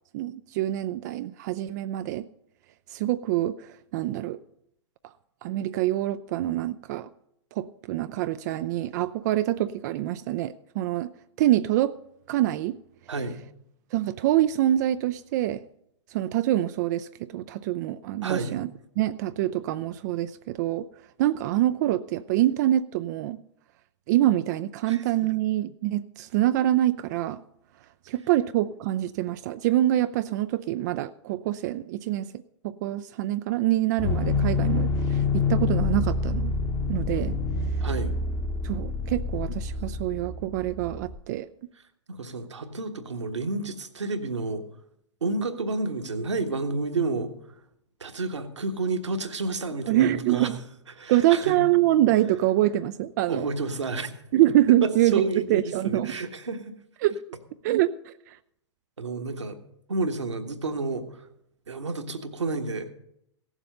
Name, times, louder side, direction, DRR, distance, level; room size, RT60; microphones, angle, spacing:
voice 1, 0.1-2.3 2.9-4.4 5.4-7.1 7.5-11.1 11.4-11.9 12.3-12.8 13.9-15.6 16.1-18.7 19.0-20.9 21.2-23.4 24.1-27.4 28.1-32.3 32.6-36.5 36.9-37.4 38.6-41.5 49.9-50.6 51.1-53.5 54.3-55.2 55.5-56.1 57.0-57.2 57.6-58.4, right 14 dB, 40° right, 12 dB, 0.4 m, -25 dB
voice 2, 18.2-18.6 24.9-25.3 37.8-38.1 42.1-44.6 45.2-47.3 48.0-50.5 50.9-51.6 53.3-54.1 54.8-56.7 59.0-59.6 59.9-61.3 61.7-62.9, right 3 dB, 75° right, 6 dB, 1.4 m, -30 dB
sound 1, 34.0-41.2, left 3 dB, 15° left, 0.9 m, -27 dB
16.5 x 7.2 x 6.5 m, 0.76 s
figure-of-eight pair, 105°, 15 cm